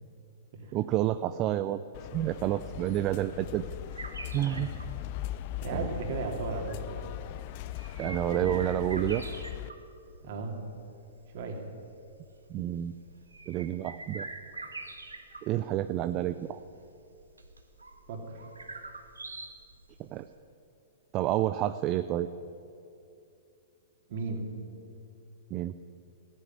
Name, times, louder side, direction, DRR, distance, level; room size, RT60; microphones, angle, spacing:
voice 1, 0.7-1.8 2.1-3.7 4.3-4.7 5.7-5.9 8.0-9.2 12.5-12.9 13.5-14.3 15.4-16.6 20.0-20.3 21.1-22.3 25.5-25.7, right 13 dB, 35° right, 11 dB, 0.5 m, -29 dB
sound 1, 1.9-9.7, left 14 dB, 45° left, 0.4 m, -39 dB
sound 2, 3.9-20.2, right 3 dB, 85° right, 1.5 m, -46 dB
voice 2, 4.4-4.8 5.6-7.1 10.2-10.6 11.3-11.6 18.1-18.4 24.1-24.5, right 3 dB, 55° right, 2 dB, 3.0 m, -36 dB
Fireworks, 8.4-11.4, left 1 dB, 85° left, 3.8 m, -50 dB
15.5 x 9.9 x 9.5 m, 2.6 s
figure-of-eight pair, 110°, 0 cm